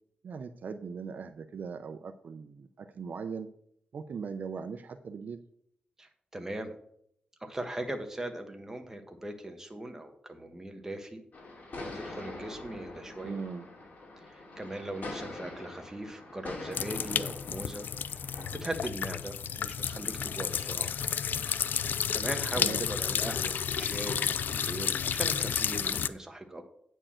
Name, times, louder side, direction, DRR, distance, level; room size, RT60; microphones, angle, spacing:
voice 1, 0.2-3.5 3.9-5.4 13.2-13.7 22.5-22.8, right 5 dB, 60° right, 9 dB, 0.5 m, -39 dB
voice 2, 6.0-6.7 7.4-11.2 11.8-13.4 14.2-17.9 18.5-20.9 22.1-26.6, right 1 dB, 15° right, 5 dB, 1.3 m, -39 dB
sound 1, 11.3-18.6, left 2 dB, 60° left, 2.6 m, -44 dB
sound 2, 16.7-26.1, left 7 dB, 75° left, 0.4 m, -31 dB
8.9 x 4.6 x 7.4 m, 0.70 s
wide cardioid pair, 115°, 3 cm